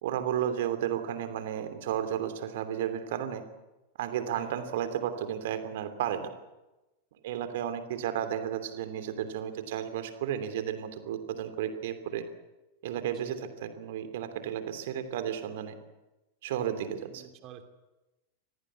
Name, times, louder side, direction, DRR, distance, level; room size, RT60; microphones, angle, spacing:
voice 1, 0.0-3.4 4.0-6.3 7.2-12.2 12.8-15.8 16.4-17.2, right 9 dB, 55° right, 10 dB, 3.0 m, -33 dB
voice 2, 13.0-13.5 17.1-17.6, right 9 dB, 35° right, 6 dB, 3.0 m, -50 dB
26.0 x 18.5 x 8.5 m, 1.0 s
figure-of-eight pair, 90°, 0 cm